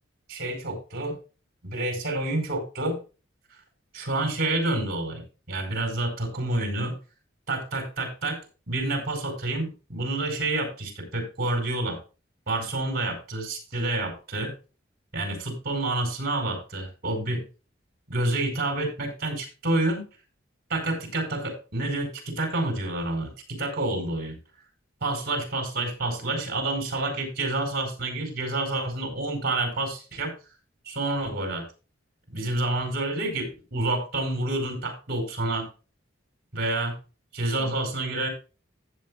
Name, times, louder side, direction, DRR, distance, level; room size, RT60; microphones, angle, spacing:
voice 1, 0.3-1.1 1.6-3.0 3.9-5.2 5.5-6.9 7.5-8.4 8.7-12.0 12.5-14.5 15.1-17.4 18.1-20.0 20.7-24.3 25.0-30.3 30.8-31.6 32.3-35.7 36.5-36.9 37.3-38.3, right 2 dB, 55° right, 6 dB, 4.6 m, -28 dB
15.0 x 8.4 x 2.3 m, 0.32 s
head